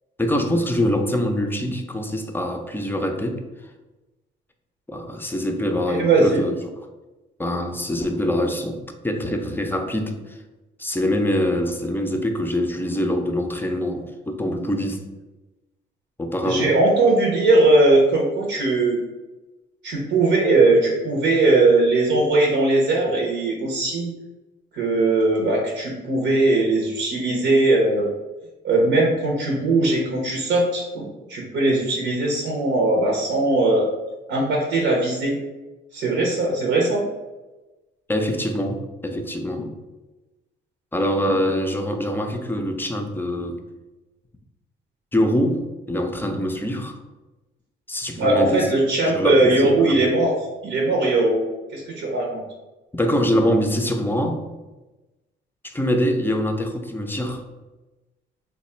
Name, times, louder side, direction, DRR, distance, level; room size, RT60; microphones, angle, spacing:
voice 1, 0.2-3.4 4.9-6.6 7.4-10.4 10.8-15.0 16.2-16.8 38.1-39.7 40.9-43.6 45.1-47.0 47.9-48.7 49.1-50.0 52.9-54.4 55.7-57.4, equal, 10° left, 4 dB, 0.5 m, -24 dB
voice 2, 5.9-6.4 16.4-19.0 19.8-24.1 24.7-28.1 28.6-33.9 34.3-35.4 35.9-37.0 48.2-50.3 50.6-51.4 51.7-52.4, right 2 dB, 80° right, -1 dB, 0.7 m, -19 dB
3.0 x 2.3 x 4.2 m, 1.1 s
cardioid pair, 90°, 20 cm